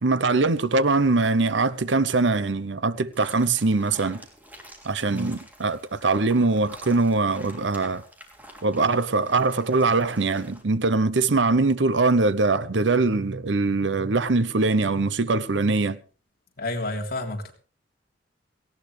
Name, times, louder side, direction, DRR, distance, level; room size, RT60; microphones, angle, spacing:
voice 1, 0.0-4.2 4.8-8.0 8.6-16.0, right 3 dB, 75° right, 0.9 m, -22 dB
sound 1, 3.1-10.6, right 1 dB, 10° right, 3.2 m, -48 dB
voice 2, 16.6-17.5, left 2 dB, 55° left, 3.3 m, -30 dB
18.5 x 17.0 x 3.4 m
head